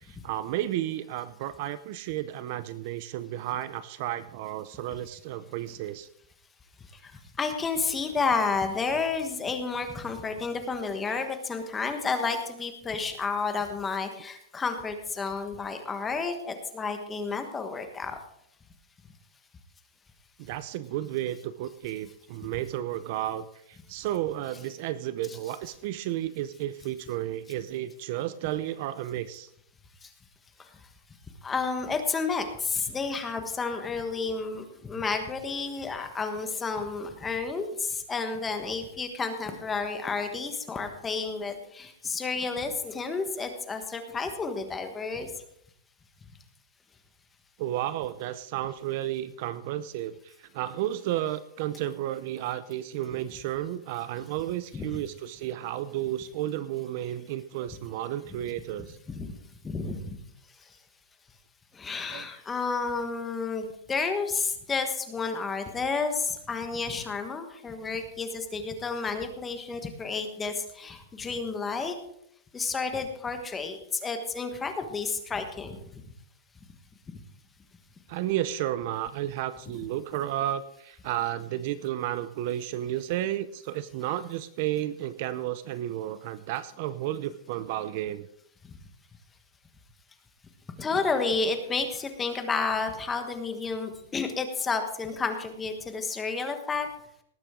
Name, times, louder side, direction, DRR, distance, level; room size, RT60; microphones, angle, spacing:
voice 1, 0.0-6.1 20.4-29.5 47.6-59.0 62.1-62.3 78.1-88.3, right 13 dB, 40° right, 15 dB, 0.5 m, -32 dB
voice 2, 7.4-18.1 25.3-25.4 30.0-30.1 31.4-45.3 54.7-54.9 59.1-59.3 59.6-60.2 61.7-72.0 72.5-75.8 90.8-96.9, left 4 dB, 10° left, 6 dB, 1.3 m, -31 dB
19.0 x 8.8 x 3.7 m, 0.73 s
supercardioid pair, 165°, 0 cm